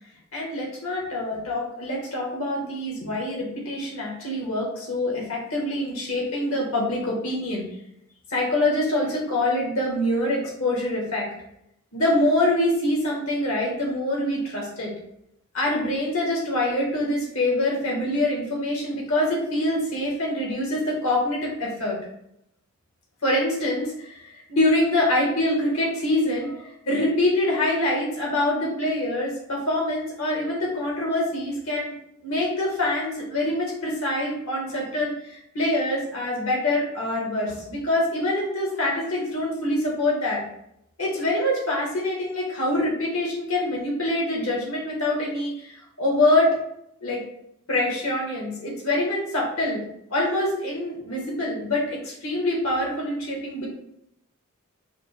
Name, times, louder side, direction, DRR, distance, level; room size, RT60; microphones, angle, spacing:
voice 1, 0.3-7.6 8.3-11.3 11.9-14.9 15.5-22.0 23.2-31.9 32.2-40.4 41.0-46.6 47.0-47.2 47.7-49.8 50.1-53.7, left 1 dB, 70° left, -2 dB, 1.2 m, -25 dB
4.9 x 2.1 x 3.2 m, 0.76 s
head